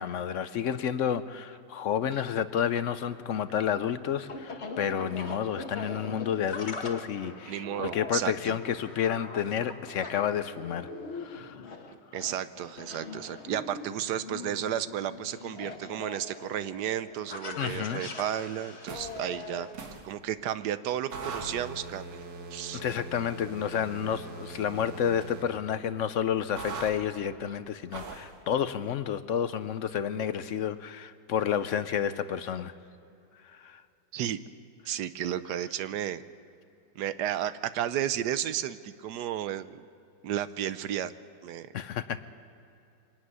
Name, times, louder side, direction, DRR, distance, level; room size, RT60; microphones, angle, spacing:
voice 1, 0.0-11.6 17.6-18.0 22.7-32.7 33.6-33.8 41.7-42.2, left 8 dB, 65° left, 12 dB, 0.7 m, -30 dB
sound 1, 3.1-19.7, left 3 dB, 40° left, 1.5 m, -42 dB
voice 2, 7.5-8.5 12.1-19.7 20.0-22.2 22.5-22.8 34.1-34.4 34.9-36.2 36.9-39.9 40.2-41.1 41.4-41.7, right 10 dB, 70° right, 14 dB, 1.2 m, -33 dB
sound 2, 18.8-19.2 19.7-20.1 21.1-25.5 26.6-27.0 27.9-28.3, right 4 dB, 90° right, 2.4 m, -41 dB
24.0 x 11.5 x 9.6 m, 2.8 s
omnidirectional pair, 1.9 m